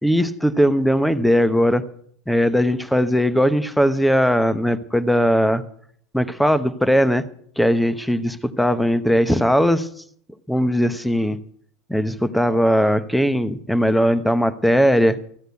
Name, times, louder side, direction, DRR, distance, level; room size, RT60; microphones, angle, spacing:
voice 1, 0.0-1.8 2.3-5.6 6.1-7.2 7.6-9.9 10.5-11.4 11.9-15.2, equal, ahead, 12 dB, 0.9 m, -19 dB
14.5 x 6.5 x 9.4 m, 0.62 s
supercardioid pair, 115°, 0 cm